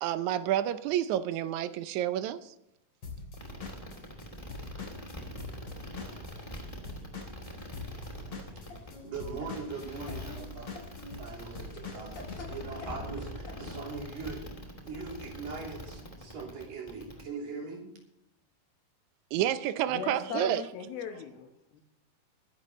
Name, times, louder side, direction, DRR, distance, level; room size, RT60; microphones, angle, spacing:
voice 1, 0.0-2.5 19.3-20.6, right 11 dB, 85° right, 11 dB, 1.7 m, -29 dB
Drum kit / Drum, 3.0-6.6 6.8-12.4, left 3 dB, 40° left, 4.3 m, -43 dB
sound 1, 3.3-17.2, equal, 10° left, 2.1 m, -43 dB
sound 2, 8.2-14.1, left 1 dB, 55° left, 5.0 m, -49 dB
voice 2, 9.0-10.8 11.2-14.4 14.9-17.9, right 4 dB, 65° right, 0 dB, 4.8 m, -41 dB
voice 3, 19.9-21.8, left 6 dB, 80° left, 4 dB, 3.0 m, -39 dB
22.0 x 11.5 x 3.1 m, 0.80 s
omnidirectional pair, 4.2 m